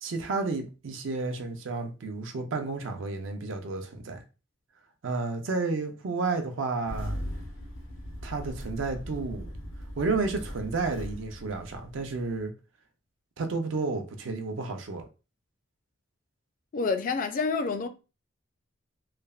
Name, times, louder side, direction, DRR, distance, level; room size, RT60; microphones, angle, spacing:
voice 1, 0.0-4.2 5.0-7.2 8.2-9.5 10.0-12.5 13.4-15.1, right 3 dB, 70° right, 0.5 m, -31 dB
Engine starting, 6.9-12.4, equal, 90° left, 0.6 m, -39 dB
voice 2, 16.7-17.9, left 4 dB, 45° left, 0.3 m, -28 dB
3.2 x 2.0 x 2.3 m
head